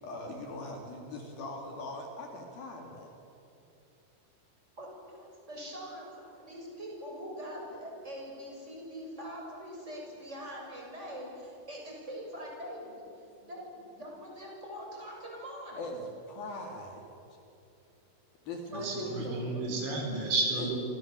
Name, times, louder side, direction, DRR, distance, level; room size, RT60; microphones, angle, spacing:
voice 1, 0.0-3.1 15.8-17.1 18.4-19.3 20.5-20.7, left 1 dB, 55° left, 2 dB, 4.0 m, -40 dB
voice 2, 4.8-13.0 13.4-15.8 18.7-19.3, equal, 15° right, -1 dB, 6.8 m, -43 dB
voice 3, 18.7-20.8, right 3 dB, 70° right, 2 dB, 6.7 m, -32 dB
28.5 x 27.0 x 7.6 m, 2.8 s
omnidirectional pair, 5.4 m